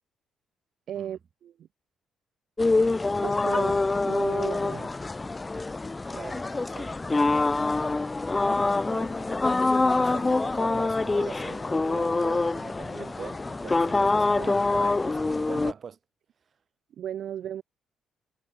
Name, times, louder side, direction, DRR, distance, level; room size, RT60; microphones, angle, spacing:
voice 1, 0.9-1.5 3.2-4.9 17.0-17.6, right 10 dB, 70° right, 1.5 m, -35 dB
sound 1, 2.6-15.7, left 3 dB, 20° left, 0.4 m, -25 dB
voice 2, 6.1-7.0 7.6-8.2 8.7-9.4 10.0-16.0, right 6 dB, 50° right, 2.3 m, -42 dB
cardioid pair, 90°, 0 cm